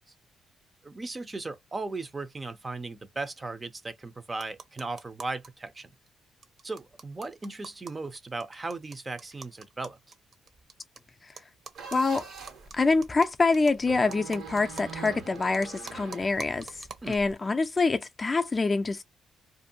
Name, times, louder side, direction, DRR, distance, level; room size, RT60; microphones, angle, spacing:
voice 1, 0.8-5.9 6.6-10.0 17.0-17.2, right 3 dB, 25° right, 0.5 m, -37 dB
sound 1, 4.4-5.5 5.8-5.9 6.1-6.2 6.4-11.0 11.4-17.3, right 4 dB, 50° right, 0.8 m, -47 dB
sound 2, 11.7-12.7 13.8-16.9, right 6 dB, 80° right, 1.4 m, -43 dB
voice 2, 11.9-12.3 12.7-19.0, left 3 dB, 25° left, 0.4 m, -26 dB
2.5 x 2.4 x 2.7 m
cardioid pair, 90°, 0 cm